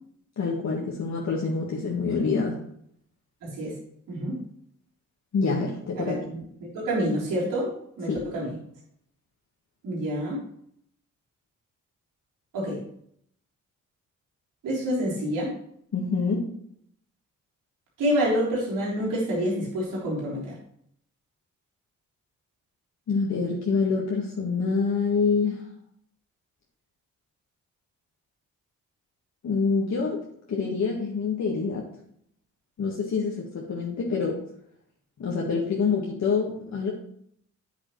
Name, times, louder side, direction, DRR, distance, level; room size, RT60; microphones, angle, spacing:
voice 1, 0.4-2.6 5.3-6.2 8.1-8.2 15.9-16.5 23.1-25.6 29.4-30.2 30.5-31.8 32.8-34.4 35.2-36.9, left 4 dB, 60° left, -3 dB, 1.8 m, -26 dB
voice 2, 3.4-3.7 4.1-4.4 6.0-6.4 6.7-7.7 8.0-8.6 9.8-10.4 12.5-12.8 14.6-15.5 18.0-20.5, equal, 85° right, -5 dB, 3.8 m, -27 dB
8.4 x 7.8 x 3.2 m, 0.69 s
cardioid pair, 70°, 31 cm